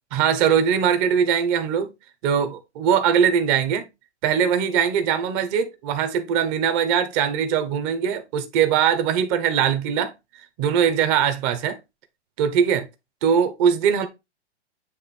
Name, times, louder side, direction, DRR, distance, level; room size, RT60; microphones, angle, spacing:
voice 1, 0.1-1.9 2.2-3.9 4.2-10.1 10.6-11.8 12.4-12.9 13.2-14.1, right 8 dB, 30° right, 1.2 m, -21 dB
9.5 x 3.3 x 4.3 m
hypercardioid pair, 145°, 34 cm